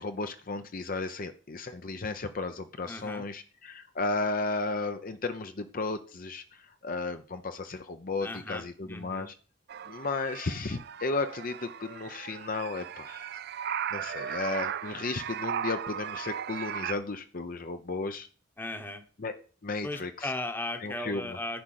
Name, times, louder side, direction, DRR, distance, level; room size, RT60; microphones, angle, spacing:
voice 1, 0.0-6.4 6.8-9.3 9.9-13.3 13.9-18.3 19.2-19.3 19.6-20.3 20.8-21.2, left 3 dB, 45° left, 8 dB, 0.7 m, -34 dB
voice 2, 2.9-3.2 8.2-9.3 18.6-19.0 19.8-21.6, left 2 dB, 10° left, 7 dB, 1.1 m, -37 dB
sound 1, 9.7-16.9, right 9 dB, 55° right, 0.4 m, -37 dB
10.5 x 5.1 x 7.6 m, 0.39 s
head